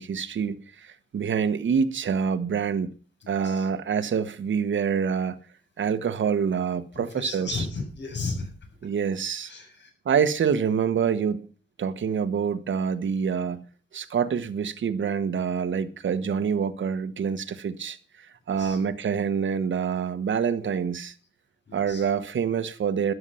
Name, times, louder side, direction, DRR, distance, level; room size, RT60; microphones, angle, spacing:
voice 1, 0.0-2.9 3.3-5.4 5.8-7.6 8.8-9.5 10.0-11.5 11.8-13.6 13.9-18.0 18.5-21.1 21.7-23.1, right 7 dB, 90° right, 1.2 m, -26 dB
voice 2, 3.2-3.7 6.9-8.5 9.4-9.9 18.6-18.8 21.7-22.1, left 3 dB, 70° left, 7.2 m, -34 dB
13.0 x 11.5 x 5.7 m
wide cardioid pair, 145°, 19 cm